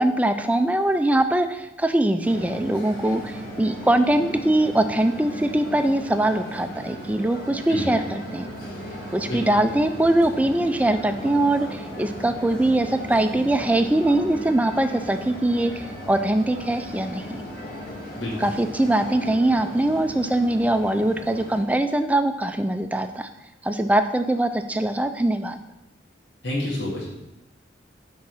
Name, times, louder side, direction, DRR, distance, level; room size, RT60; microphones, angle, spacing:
voice 1, 0.0-8.5 9.1-17.2 18.4-23.3 23.6-25.6, right 1 dB, 10° right, 8 dB, 0.3 m, -22 dB
sound 1, 2.2-21.6, equal, 50° left, 1.9 m, -36 dB
voice 2, 7.7-8.0 9.3-9.5 18.2-18.5 26.4-27.2, left 1 dB, 75° left, -6 dB, 2.1 m, -29 dB
8.3 x 3.8 x 6.2 m, 0.92 s
head